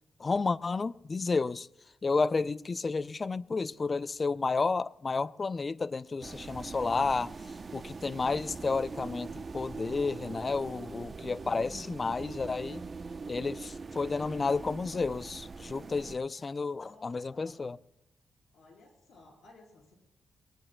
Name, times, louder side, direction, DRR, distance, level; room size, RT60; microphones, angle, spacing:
voice 1, 0.2-1.7 2.0-7.3 7.7-12.8 13.3-17.8, left 4 dB, 45° left, 0.4 m, -31 dB
sound 1, 6.2-16.2, right 4 dB, 45° right, 0.7 m, -42 dB
voice 2, 16.0-16.5 16.8-17.7 18.5-20.0, left 2 dB, 75° left, 4.3 m, -58 dB
21.5 x 19.0 x 2.2 m
supercardioid pair, 50°, 0 cm